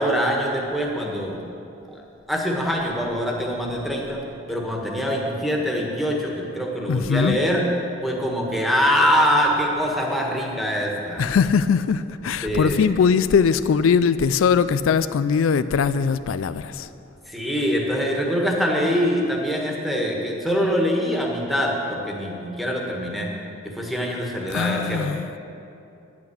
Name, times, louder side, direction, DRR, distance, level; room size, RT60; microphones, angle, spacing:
voice 1, 0.0-1.4 1.9-2.0 2.3-4.2 4.5-7.7 8.0-11.2 12.4-12.9 17.3-23.3 23.7-25.1, equal, ahead, -2 dB, 1.5 m, -24 dB
voice 2, 6.9-7.4 11.2-16.9 24.5-25.3, left 6 dB, 85° left, 14 dB, 0.4 m, -21 dB
9.7 x 8.3 x 8.5 m, 2.7 s
head